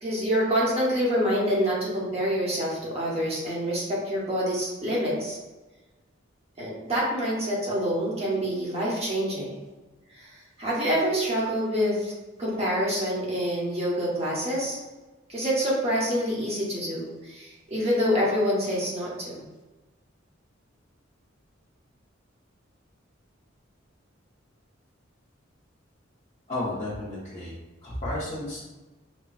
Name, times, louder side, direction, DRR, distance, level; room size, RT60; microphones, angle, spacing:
voice 1, 0.0-5.4 6.6-9.6 10.2-10.3 10.6-12.1 12.4-14.8 15.3-19.4, equal, 30° right, -5 dB, 1.1 m, -26 dB
voice 2, 26.5-27.5 27.8-28.7, left 1 dB, 35° left, -10 dB, 1.0 m, -32 dB
5.4 x 2.2 x 2.4 m, 1.1 s
head